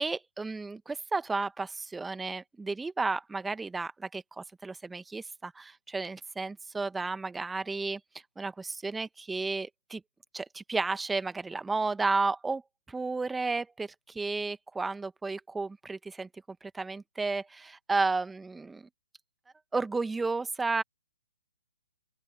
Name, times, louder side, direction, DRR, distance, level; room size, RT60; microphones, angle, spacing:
voice 1, 0.0-8.0 8.4-10.0 10.3-12.6 12.9-18.9 19.7-20.8, right 3 dB, 5° right, 1.5 m, -32 dB
open air
figure-of-eight pair, 135°, 0 cm